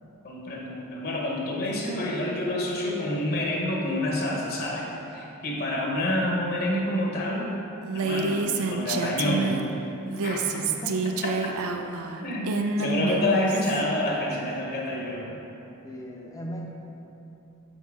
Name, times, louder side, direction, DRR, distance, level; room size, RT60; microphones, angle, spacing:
voice 1, 0.2-7.5 7.9-8.4 8.7-9.6 10.2-10.4 12.2-12.5 12.8-15.3, left 1 dB, 45° left, -2 dB, 0.9 m, -28 dB
Female speech woman speaking, 7.8-9.7 10.1-13.8, right 4 dB, 80° right, 0.4 m, -28 dB
voice 2, 10.5-11.0 11.5-11.6 15.8-16.7, equal, 15° left, -1 dB, 0.6 m, -39 dB
7.1 x 4.3 x 3.5 m, 2.9 s
head